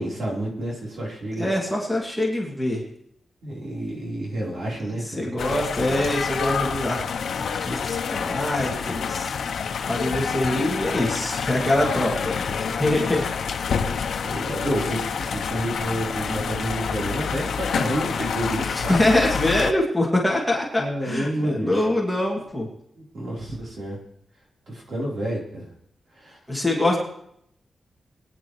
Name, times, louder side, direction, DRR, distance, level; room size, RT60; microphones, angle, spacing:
voice 1, 0.0-1.5 3.4-5.3 14.2-19.0 20.8-21.7 23.1-24.0 24.9-25.6 26.2-26.3, right 1 dB, 60° right, -3 dB, 3.8 m, -29 dB
voice 2, 1.4-2.8 4.8-7.0 7.4-9.3 9.9-13.2 18.6-22.7 26.5-27.0, left 1 dB, 5° left, -3 dB, 2.3 m, -24 dB
sound 1, 5.4-19.7, left 6 dB, 85° left, 0.8 m, -28 dB
21.5 x 9.9 x 3.1 m, 0.73 s
wide cardioid pair, 145°, 0 cm